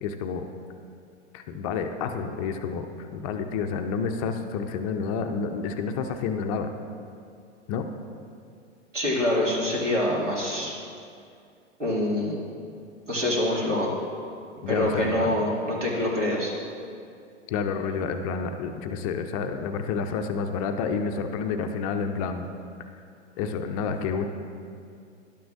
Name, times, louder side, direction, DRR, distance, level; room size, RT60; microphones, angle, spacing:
voice 1, 0.0-0.4 1.3-6.7 7.7-7.9 14.6-15.4 17.5-22.5 23.4-24.3, left 5 dB, 30° left, 6 dB, 0.5 m, -29 dB
voice 2, 8.9-10.7 11.8-12.4 13.1-13.9 14.7-16.5, left 1 dB, 85° right, -4 dB, 2.2 m, -25 dB
11.5 x 9.2 x 2.5 m, 2.4 s
figure-of-eight pair, 100°, 36 cm